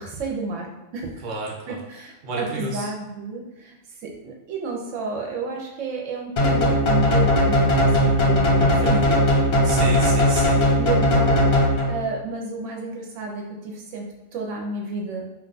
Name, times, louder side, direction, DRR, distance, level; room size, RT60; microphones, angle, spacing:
voice 1, 0.0-1.2 1.7-3.8 4.0-9.2 10.8-15.3, right 3 dB, 80° right, 0 dB, 0.9 m, -31 dB
voice 2, 1.2-1.8 2.2-2.9 8.6-9.0 9.6-10.6, right 2 dB, 50° right, -2 dB, 0.7 m, -31 dB
sound 1, 6.4-12.1, left 1 dB, 60° left, 0.7 m, -18 dB
2.5 x 2.2 x 3.9 m, 1.0 s
omnidirectional pair, 1.3 m